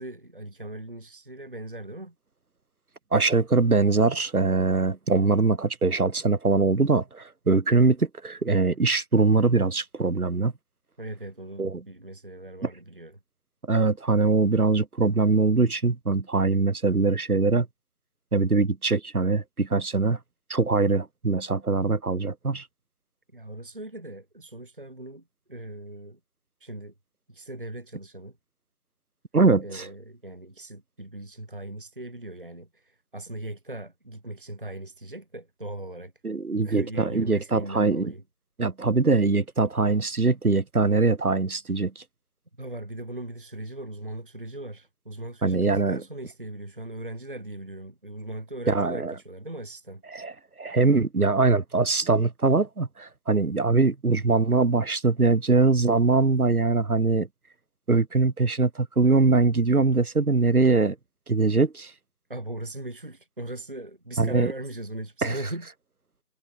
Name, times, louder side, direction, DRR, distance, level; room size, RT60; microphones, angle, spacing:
voice 1, 0.0-2.2 11.0-13.2 23.3-26.2 26.6-26.9 27.3-28.4 29.6-36.1 36.5-38.2 42.6-50.0 62.3-65.7, right 1 dB, 30° right, 1.9 m, -39 dB
voice 2, 3.1-10.5 11.6-11.8 13.7-17.7 18.3-20.2 20.5-22.6 29.3-29.9 36.2-38.1 38.6-42.0 45.4-46.0 48.7-49.1 50.1-50.3 50.6-57.3 57.9-61.0 61.3-61.9 64.2-64.5 65.2-65.4, right 3 dB, 60° right, 1.2 m, -22 dB
figure-of-eight pair, 170°, 49 cm